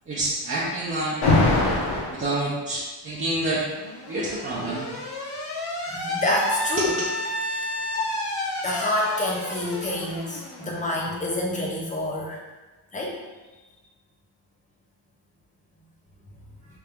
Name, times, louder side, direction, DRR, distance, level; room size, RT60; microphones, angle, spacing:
voice 1, 0.1-1.2 2.1-3.6 4.1-4.9 6.8-6.9, right 1 dB, 25° right, -7 dB, 0.6 m, -27 dB
Alarm, 1.2-2.2 3.4-11.1, left 2 dB, 80° left, 1.1 m, -28 dB
voice 2, 5.9-7.0 7.5-7.7 8.6-12.4 12.9-13.1, left 1 dB, 15° left, -2 dB, 0.7 m, -27 dB
3.4 x 2.7 x 3.5 m, 1.2 s
cardioid pair, 125°, 49 cm